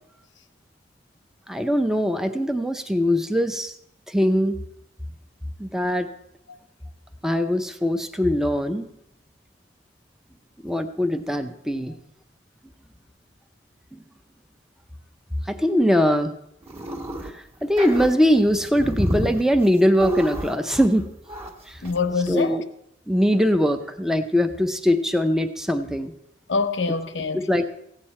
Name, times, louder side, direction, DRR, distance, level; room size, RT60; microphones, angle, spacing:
voice 1, 1.5-3.7 4.1-4.6 5.6-6.1 7.2-8.9 10.6-12.0 15.5-16.3 17.2-21.1 21.7-21.8 22.3-22.6 23.1-26.1 27.3-27.6, equal, 5° right, 0.6 m, -21 dB
sound 1, 16.6-17.3 17.6-21.0 21.3-21.5 21.8-22.0 22.3-22.4, equal, 35° right, 1.6 m, -29 dB
voice 2, 21.8-22.6 26.5-27.7, left 4 dB, 80° left, 0.8 m, -25 dB
15.0 x 9.1 x 4.3 m
head